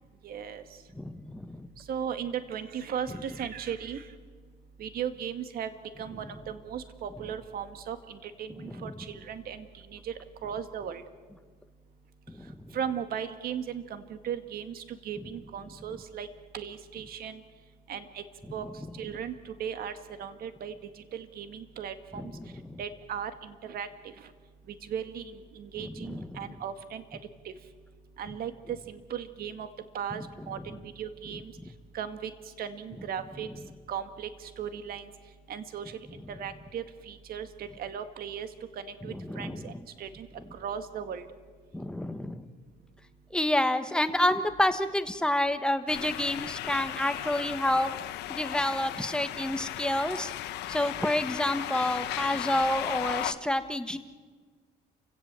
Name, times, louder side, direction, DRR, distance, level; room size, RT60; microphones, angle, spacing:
voice 1, 0.2-0.6 1.9-4.0 4.8-5.7 6.0-9.7 9.9-10.1 10.4-11.0 12.7-16.3 16.5-17.4 17.9-18.2 18.5-18.7 19.0-19.3 19.6-19.9 20.2-20.7 21.1-22.3 22.8-23.9 24.8-25.2 25.6-27.0 28.2-29.7 29.9-31.5 31.9-32.3 32.6-33.5 33.9-35.0 35.5-35.9 36.3-38.5 38.8-41.2, right 8 dB, 60° right, 9 dB, 1.9 m, -37 dB
voice 2, 0.9-1.7 8.6-8.9 12.3-12.8 22.1-22.8 25.8-26.6 30.4-30.6 39.0-39.8 41.7-42.5 43.3-47.9 48.3-50.3 50.7-54.0, left 1 dB, 5° left, 9 dB, 1.3 m, -29 dB
sound 1, 45.9-53.3, left 14 dB, 80° left, 1.1 m, -36 dB
28.5 x 17.0 x 7.7 m, 1.5 s
cardioid pair, 110°, 17 cm